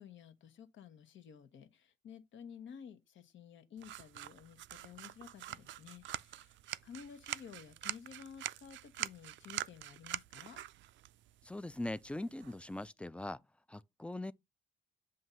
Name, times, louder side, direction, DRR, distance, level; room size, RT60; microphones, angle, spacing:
voice 1, 0.0-6.6 6.8-10.6, left 7 dB, 70° left, 1.1 m, -53 dB
sound 1, 3.8-12.9, right 13 dB, 70° right, 0.4 m, -45 dB
voice 2, 11.4-13.4 13.7-14.3, left 1 dB, 5° left, 0.4 m, -41 dB
7.7 x 2.7 x 5.6 m
cardioid pair, 90°, 20 cm